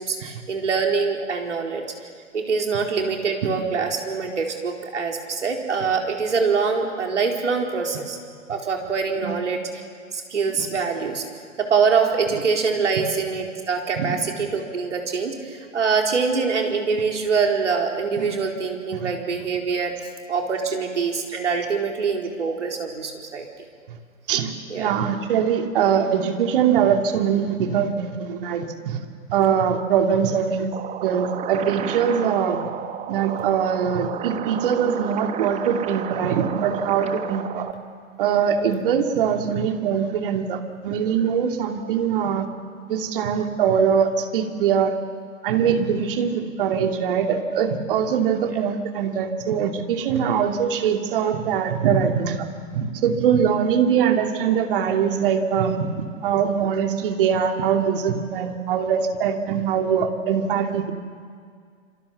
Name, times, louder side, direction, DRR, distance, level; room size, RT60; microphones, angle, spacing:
voice 1, 0.0-1.8 2.3-8.2 8.5-9.6 10.1-11.3 11.6-19.9 20.3-23.5 24.7-24.9 48.5-48.6, right 5 dB, 65° right, 1 dB, 4.5 m, -24 dB
voice 2, 24.3-29.0 29.3-30.7 31.0-32.6 33.1-37.7 38.2-42.5 42.9-44.9 45.4-52.5 52.7-55.9 56.2-60.9, right 7 dB, 45° right, 4 dB, 2.7 m, -22 dB
sound 1, 30.7-37.7, right 9 dB, 15° right, 1.3 m, -32 dB
27.0 x 26.5 x 7.1 m, 2.1 s
figure-of-eight pair, 115°, 39 cm